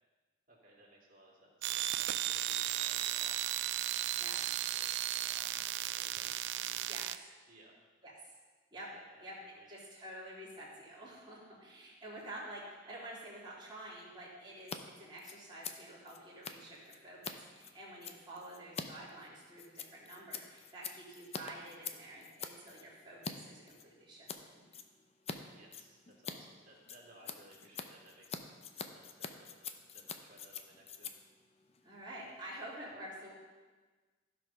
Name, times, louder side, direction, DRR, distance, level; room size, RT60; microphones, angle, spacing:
voice 1, 0.5-3.4 4.7-7.0 7.5-7.7 8.9-9.7 25.5-28.4 28.7-31.2, right 1 dB, 45° right, -3 dB, 2.9 m, -61 dB
sound 1, 1.6-7.2, right 13 dB, 60° right, 0.4 m, -35 dB
voice 2, 6.8-7.1 8.0-8.3 8.7-8.9 9.2-9.3 9.7-24.6 31.8-33.3, right 1 dB, 25° right, -7 dB, 3.3 m, -49 dB
Scissors, 14.6-14.8 15.0-23.3 23.7-24.4 24.7-25.4 25.6-32.4, left 6 dB, 30° left, 0.6 m, -46 dB
15.0 x 5.2 x 5.8 m, 1.4 s
head